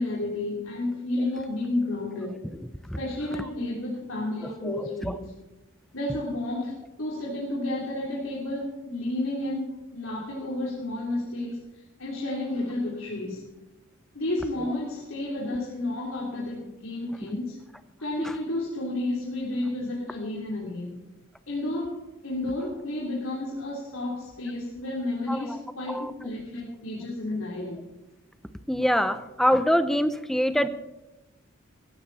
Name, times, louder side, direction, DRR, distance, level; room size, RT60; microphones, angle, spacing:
voice 1, 0.0-2.5 3.0-5.4 5.9-11.6 12.0-13.5 14.1-17.6 18.0-21.0 21.5-27.8, left 2 dB, 85° left, -5 dB, 3.5 m, -31 dB
voice 2, 4.6-5.1 25.3-25.4 25.9-26.1 28.7-30.7, equal, ahead, 11 dB, 0.7 m, -24 dB
16.5 x 16.0 x 4.2 m, 0.99 s
head